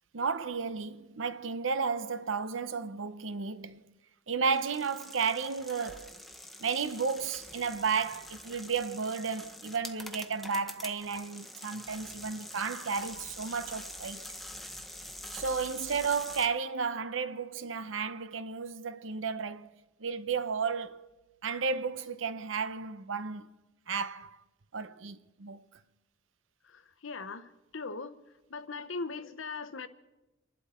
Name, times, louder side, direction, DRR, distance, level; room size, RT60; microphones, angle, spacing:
voice 1, 0.1-3.8 4.3-6.1 6.6-14.2 15.3-19.7 20.0-21.0 21.4-23.5 23.9-24.4 24.7-25.6, right 5 dB, 80° right, 0.8 m, -33 dB
sound 1, 4.5-16.5, left 1 dB, ahead, 0.9 m, -46 dB
voice 2, 27.0-27.4 27.7-28.2 28.5-29.9, left 4 dB, 80° left, 0.9 m, -38 dB
27.5 x 11.5 x 4.3 m
head